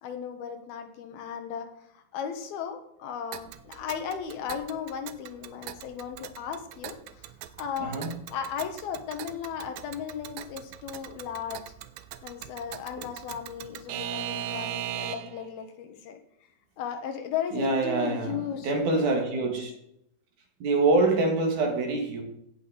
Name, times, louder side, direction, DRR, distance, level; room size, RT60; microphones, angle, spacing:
voice 1, 0.0-1.7 1.9-7.3 7.6-8.0 8.3-11.6 12.2-16.2 16.8-19.5, left 8 dB, 85° left, 6 dB, 3.2 m, -36 dB
Alarm / Clock, 3.3-15.5, right 11 dB, 80° right, 2.2 m, -40 dB
voice 2, 7.8-8.1 17.5-19.7 20.6-22.2, right 3 dB, 60° right, 2 dB, 3.3 m, -25 dB
16.5 x 5.7 x 5.0 m, 0.74 s
omnidirectional pair, 4.2 m